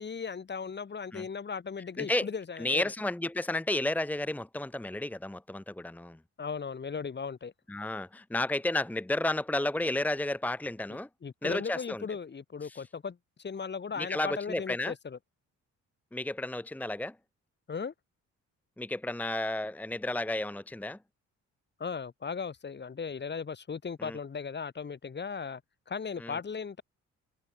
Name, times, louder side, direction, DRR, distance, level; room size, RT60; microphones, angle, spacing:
voice 1, 0.0-2.9 6.4-7.5 11.2-15.2 17.7-17.9 21.8-25.6 25.9-26.8, left 5 dB, 35° left, 2.6 m, -37 dB
voice 2, 2.0-2.3 2.6-6.2 7.7-11.1 11.4-12.0 12.6-12.8 14.0-14.9 16.1-17.1 18.8-21.0 24.0-24.2 26.2-26.4, left 2 dB, 5° left, 1.2 m, -32 dB
cardioid pair, 90°, 30 cm